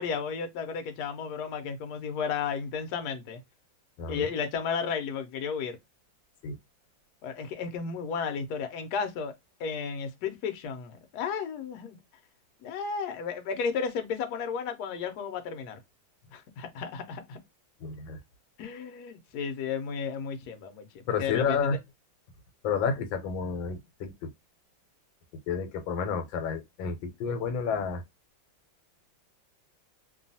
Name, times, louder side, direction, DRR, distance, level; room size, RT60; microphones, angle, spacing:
voice 1, 0.0-3.4 4.1-5.8 7.2-9.3 9.6-12.0 12.6-15.8 16.3-17.4 18.6-20.9 21.2-21.6, left 6 dB, 70° left, 1.0 m, -33 dB
voice 2, 17.8-18.2 21.1-21.8 22.6-24.3 25.5-28.0, left 6 dB, 85° left, 1.4 m, -30 dB
3.0 x 2.3 x 2.6 m
omnidirectional pair, 2.1 m